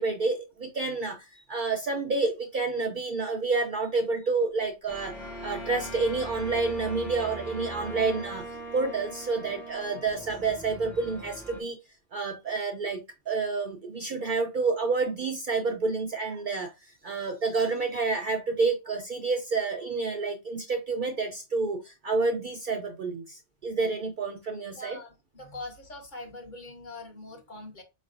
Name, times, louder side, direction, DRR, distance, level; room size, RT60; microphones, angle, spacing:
voice 1, 0.0-5.1 5.4-11.8 12.1-25.0, right 4 dB, 60° right, 4 dB, 0.5 m, -29 dB
Bowed string instrument, 4.9-10.6, right 1 dB, 60° left, 1.3 m, -42 dB
sound 1, 4.9-11.6, right 2 dB, 5° left, 0.4 m, -43 dB
voice 2, 24.7-27.8, left 2 dB, 45° left, 3 dB, 0.9 m, -43 dB
4.4 x 3.2 x 2.4 m, 0.25 s
omnidirectional pair, 1.2 m